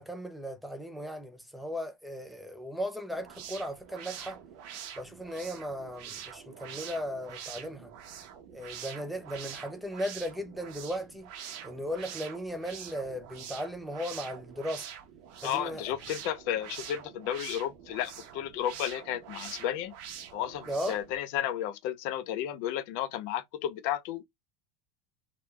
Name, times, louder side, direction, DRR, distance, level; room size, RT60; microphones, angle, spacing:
voice 1, 0.0-4.4 5.0-8.0 8.5-11.3 11.6-14.9 15.4-15.8 20.7-21.0, equal, ahead, 0.5 m, -37 dB
sound 1, 3.1-21.2, right 9 dB, 60° right, 0.8 m, -45 dB
voice 2, 15.4-19.9 20.3-24.2, left 11 dB, 55° left, 0.5 m, -33 dB
3.4 x 2.2 x 3.1 m
cardioid pair, 165°, 4 cm